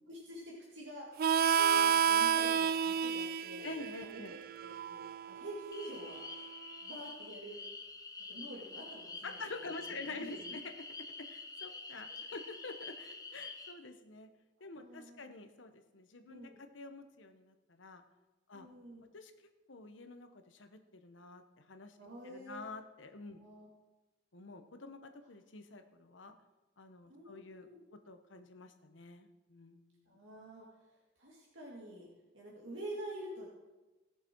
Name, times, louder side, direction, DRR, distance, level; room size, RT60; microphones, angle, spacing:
voice 1, 0.1-1.1 1.6-3.8 4.0-6.3 6.8-7.6 8.3-10.6 14.6-15.2 16.3-16.6 18.5-19.0 22.0-22.6 23.3-23.7 27.1-27.8 30.1-32.1 32.3-33.5, right 1 dB, 80° right, -4 dB, 2.3 m, -48 dB
Harmonica, 1.2-6.5, right 8 dB, 55° right, 0.4 m, -31 dB
voice 2, 3.6-4.3 9.2-10.6 11.0-14.3 14.6-18.0 18.5-18.7 19.1-19.3 19.7-21.4 21.7-22.0 22.2-23.4 24.3-26.3 26.8-30.0, left 3 dB, 80° left, 8 dB, 1.1 m, -48 dB
sound 1, 5.7-13.7, left 3 dB, 20° left, 1.0 m, -47 dB
18.0 x 6.9 x 4.6 m, 1.1 s
head